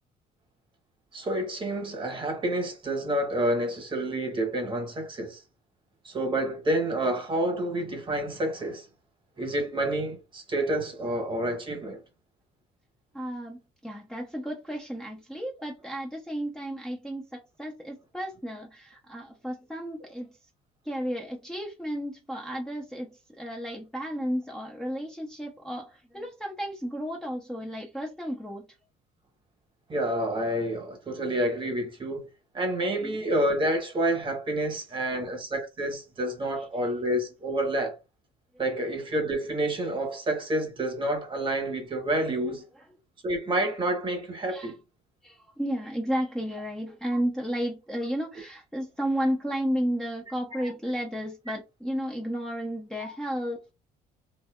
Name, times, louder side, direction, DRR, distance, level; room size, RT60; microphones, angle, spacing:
voice 1, 1.1-5.4 6.0-8.8 9.4-12.0 29.9-32.3 32.5-38.0 38.6-42.6 43.2-44.7 50.5-50.7 53.0-53.1, right 1 dB, 30° right, 1.0 m, -29 dB
voice 2, 13.1-20.3 20.8-23.1 23.4-28.7 33.0-33.2 44.5-44.7 45.2-53.7, equal, 5° left, 0.5 m, -33 dB
2.6 x 2.2 x 2.2 m
cardioid pair, 110°, 17 cm